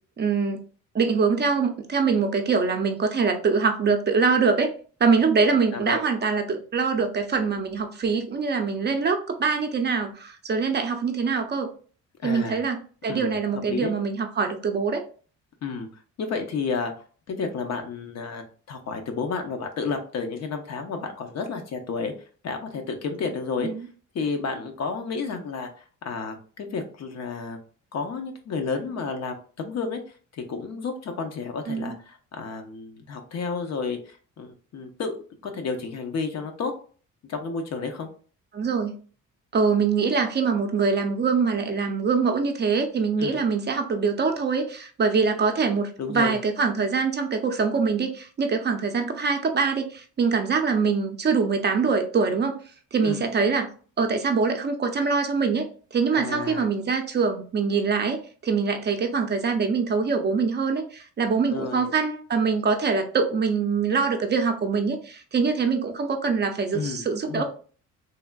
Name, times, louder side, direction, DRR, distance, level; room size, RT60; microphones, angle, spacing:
voice 1, 0.2-0.6 0.9-4.7 5.0-11.7 12.2-12.8 13.0-15.0 23.6-23.7 31.7-31.9 38.5-38.9 39.5-52.6 52.9-53.7 54.0-55.6 55.9-67.4, right 5 dB, 35° right, 5 dB, 0.5 m, -24 dB
voice 2, 12.2-12.6 13.1-13.4 13.7-13.9 15.6-15.9 16.2-16.9 17.3-22.1 22.4-23.7 24.1-25.7 26.0-27.6 27.9-30.0 30.3-35.2 35.4-36.7 37.3-38.1 43.2-43.4 46.0-46.4 53.0-53.3 56.1-56.7 61.5-61.9 66.7-67.4, left 4 dB, 60° left, 5 dB, 0.8 m, -31 dB
3.3 x 2.4 x 2.3 m, 0.40 s
cardioid pair, 90°, 30 cm